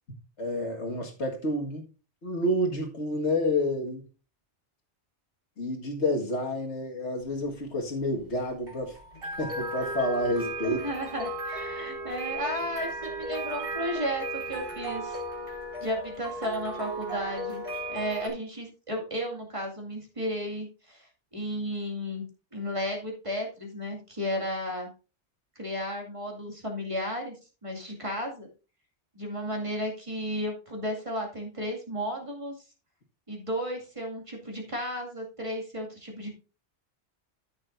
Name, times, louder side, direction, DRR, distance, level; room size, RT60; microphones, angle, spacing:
voice 1, 0.4-1.9 2.2-4.0 5.6-9.0 9.4-10.8, left 1 dB, 70° left, 2.1 m, -29 dB
sound 1, 7.2-18.3, right 1 dB, 50° right, 3.2 m, -36 dB
voice 2, 10.6-15.2 15.8-17.6 17.9-21.1 21.3-22.2 22.5-24.9 25.6-27.3 27.6-28.5 29.2-32.5 33.3-36.4, equal, 25° right, 2.4 m, -33 dB
13.5 x 6.5 x 2.6 m
omnidirectional pair, 1.2 m